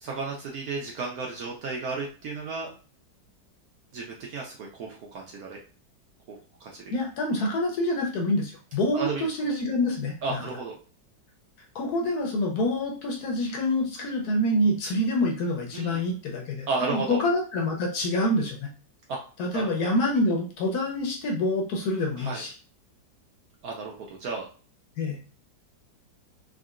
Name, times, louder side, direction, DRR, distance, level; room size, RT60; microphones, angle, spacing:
voice 1, 0.0-2.7 3.9-5.6 6.3-6.4 6.6-6.9 8.9-9.2 10.2-10.8 15.7-16.0 16.7-17.2 19.1-19.2 19.5-19.7 22.2-22.4 23.6-24.5, right 4 dB, 70° right, -1 dB, 0.9 m, -33 dB
voice 2, 6.9-10.4 11.7-18.7 19.4-22.5 25.0-25.2, left 1 dB, 70° left, 0 dB, 1.0 m, -26 dB
3.6 x 2.1 x 2.4 m, 0.38 s
omnidirectional pair, 2.0 m